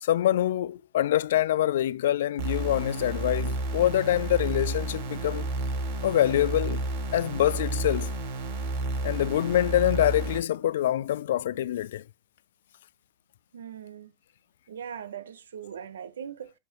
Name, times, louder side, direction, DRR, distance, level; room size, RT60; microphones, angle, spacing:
voice 1, 0.0-5.5 6.0-6.8 7.1-8.1 9.0-12.0, left 12 dB, 75° left, 0.3 m, -25 dB
sound 1, 2.4-10.4, right 2 dB, 65° right, 3.0 m, -31 dB
voice 2, 13.5-14.1 14.7-16.5, right 8 dB, 85° right, 0.8 m, -40 dB
7.6 x 5.9 x 2.9 m
hypercardioid pair, 115°, 0 cm